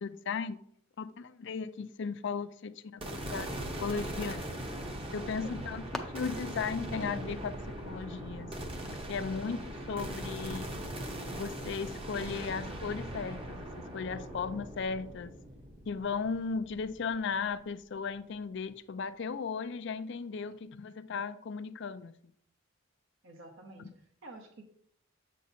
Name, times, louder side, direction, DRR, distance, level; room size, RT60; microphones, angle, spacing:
voice 1, 0.0-0.6 1.0-3.5 3.8-4.5 5.1-7.6 7.8-8.7 9.1-10.7 11.3-15.3 15.9-22.1, left 5 dB, 60° left, 0.4 m, -36 dB
sound 1, 3.0-17.3, right 1 dB, 25° right, 0.8 m, -40 dB
sound 2, 5.0-10.1, left 1 dB, ahead, 0.5 m, -49 dB
voice 2, 23.2-24.6, right 2 dB, 65° right, 0.9 m, -50 dB
7.7 x 6.4 x 2.7 m
head